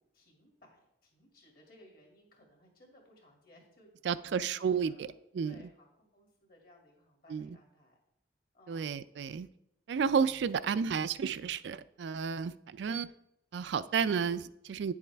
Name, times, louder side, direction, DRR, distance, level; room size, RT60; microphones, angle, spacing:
voice 1, 0.0-5.0 5.4-8.0 8.5-8.8 10.4-10.7, left 1 dB, 50° left, 0 dB, 2.3 m, -61 dB
voice 2, 4.0-5.1 5.3-5.5 7.3-7.5 8.7-9.5 9.9-13.1 13.5-14.9, right 6 dB, 65° right, 14 dB, 0.3 m, -31 dB
9.2 x 7.2 x 3.4 m, 0.81 s
head